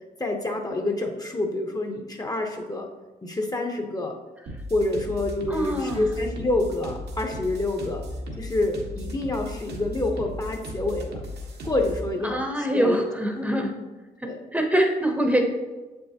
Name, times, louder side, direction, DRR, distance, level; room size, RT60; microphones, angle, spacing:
voice 1, 0.2-2.9 3.2-4.2 4.7-8.0 8.4-11.2 11.6-13.0 13.5-13.6 14.2-14.4, left 2 dB, 20° left, 2 dB, 0.8 m, -27 dB
sound 1, 4.5-12.1, left 1 dB, 70° right, 1.2 m, -36 dB
voice 2, 5.5-6.1 12.2-13.7 14.2-15.4, equal, 10° right, 3 dB, 0.8 m, -24 dB
7.1 x 5.6 x 2.8 m, 1.2 s
cardioid pair, 80°, 17 cm